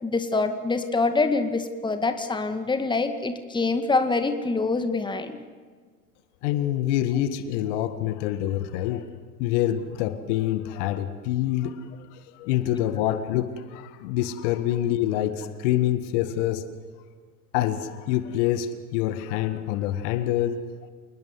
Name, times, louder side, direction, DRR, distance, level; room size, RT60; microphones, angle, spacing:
voice 1, 0.0-5.4, left 3 dB, 10° left, 8 dB, 2.1 m, -25 dB
voice 2, 6.4-9.1 9.4-16.7 17.5-20.6, left 12 dB, 50° left, 11 dB, 1.8 m, -26 dB
28.0 x 20.0 x 7.9 m, 1.5 s
figure-of-eight pair, 85°, 45 cm